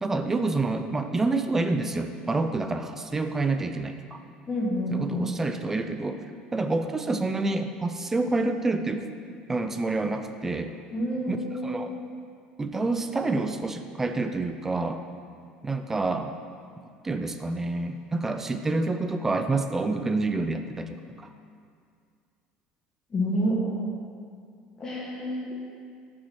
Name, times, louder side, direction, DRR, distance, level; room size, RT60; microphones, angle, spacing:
voice 1, 0.0-4.2 4.9-6.2 6.5-9.1 9.5-10.7 11.3-11.4 11.6-11.9 12.6-15.0 15.6-16.4 17.0-21.3, right 3 dB, 15° right, 7 dB, 0.5 m, -28 dB
voice 2, 4.5-5.3 10.9-11.9 23.1-23.8 24.8-25.5, equal, 25° left, -3 dB, 1.6 m, -28 dB
11.5 x 6.3 x 4.4 m, 2.2 s
cardioid pair, 130°, 3 cm